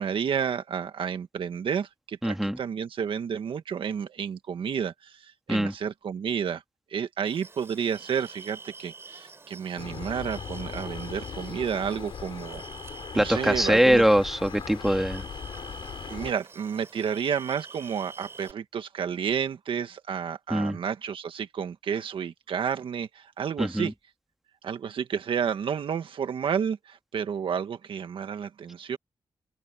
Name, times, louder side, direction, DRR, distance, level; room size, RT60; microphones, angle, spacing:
voice 1, 0.0-6.6 6.9-12.6 13.1-14.0 16.1-23.9 24.6-29.0, right 7 dB, 80° right, 1.6 m, -31 dB
voice 2, 2.2-2.6 5.5-5.7 13.1-15.2 20.5-20.8 23.6-23.9, equal, 5° right, 1.9 m, -22 dB
sound 1, 7.2-18.5, right 4 dB, 30° right, 5.5 m, -47 dB
sound 2, 9.8-16.3, left 7 dB, 70° left, 6.6 m, -39 dB
wide cardioid pair, 160°, 9 cm